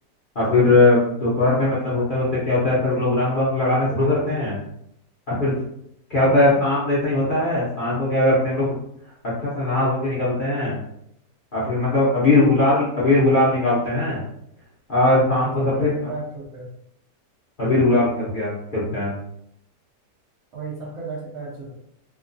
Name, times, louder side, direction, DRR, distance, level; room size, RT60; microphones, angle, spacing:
voice 1, 0.3-4.6 5.3-5.5 6.1-8.7 9.4-10.8 11.5-14.2 14.9-15.9 17.6-19.1, left 2 dB, 45° left, -8 dB, 0.7 m, -20 dB
voice 2, 6.2-6.6 12.3-12.6 15.4-16.7 20.5-21.7, right 4 dB, 60° right, -5 dB, 0.8 m, -34 dB
2.9 x 2.2 x 2.5 m, 0.73 s
omnidirectional pair, 1.7 m